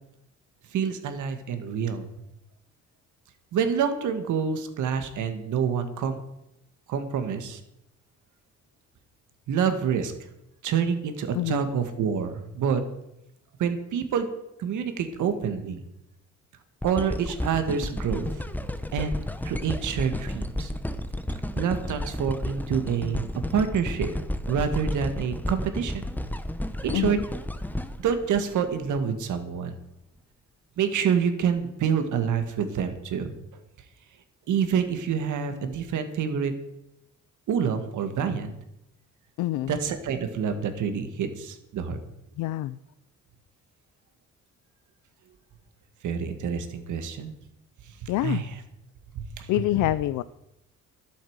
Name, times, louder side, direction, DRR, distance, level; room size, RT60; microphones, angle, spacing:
voice 1, 0.7-2.1 3.5-6.2 6.9-7.6 9.5-10.1 10.6-12.8 13.6-14.3 14.6-15.8 16.8-18.3 18.9-19.2 19.4-20.7 21.6-24.1 24.5-26.1 26.8-27.2 28.0-29.7 30.8-33.3 34.5-36.5 37.5-38.6 39.7-42.0 46.0-47.3 48.0-48.5 49.1-49.5, right 7 dB, 75° right, 8 dB, 2.0 m, -27 dB
sound 1, 16.8-29.0 29.6-29.7, left 1 dB, 5° left, 1.0 m, -32 dB
voice 2, 39.4-39.8 42.4-42.8 48.1-48.4 49.5-50.2, left 15 dB, 85° left, 16 dB, 0.5 m, -26 dB
12.0 x 8.5 x 8.1 m, 0.84 s
cardioid pair, 90°, 30 cm